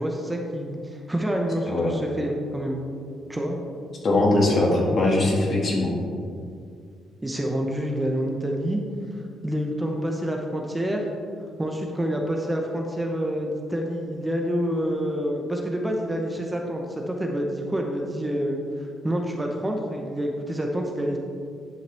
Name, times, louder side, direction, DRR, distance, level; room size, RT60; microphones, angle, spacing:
voice 1, 0.0-2.8 3.3-3.6 7.2-8.8 9.4-11.0 11.6-18.6 19.0-21.2, equal, 10° right, 1 dB, 0.9 m, -27 dB
voice 2, 4.0-5.9, left 2 dB, 50° left, -2 dB, 2.0 m, -21 dB
10.5 x 5.6 x 3.5 m, 2.3 s
cardioid pair, 90°, 0 cm